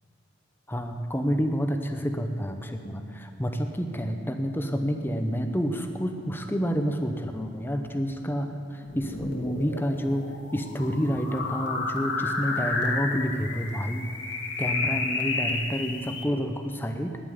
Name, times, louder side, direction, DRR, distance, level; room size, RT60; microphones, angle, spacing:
voice 1, 0.7-14.1 14.6-17.2, equal, 10° left, 6 dB, 0.8 m, -29 dB
sound 1, 8.8-16.2, left 3 dB, 65° left, 1.7 m, -31 dB
10.0 x 9.3 x 9.6 m, 2.5 s
head